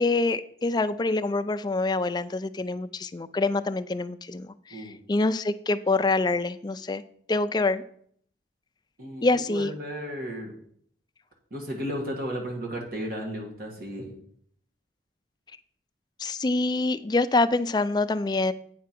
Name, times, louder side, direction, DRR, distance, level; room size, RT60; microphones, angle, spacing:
voice 1, 0.0-7.0 7.3-7.8 9.2-9.7 16.2-18.5, left 3 dB, 25° left, 11 dB, 0.3 m, -26 dB
voice 2, 9.0-10.6 11.5-14.2, equal, 55° right, 0 dB, 1.6 m, -34 dB
8.7 x 4.7 x 5.9 m, 0.63 s
head